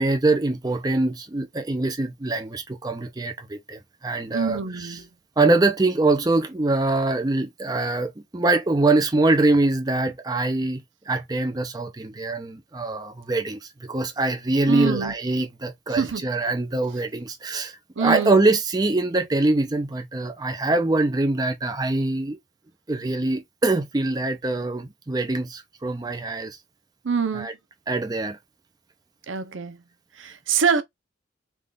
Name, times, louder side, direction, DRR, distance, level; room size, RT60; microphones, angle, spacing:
voice 1, 0.0-4.9 5.4-22.4 22.9-26.6 27.3-27.5 27.9-28.4, right 2 dB, 20° right, 0.5 m, -24 dB
voice 2, 4.3-5.1 14.7-15.1 15.9-16.3 18.0-18.4 27.0-27.5 29.3-29.8 30.2-30.8, right 6 dB, 85° right, 0.6 m, -25 dB
3.5 x 2.4 x 3.8 m
head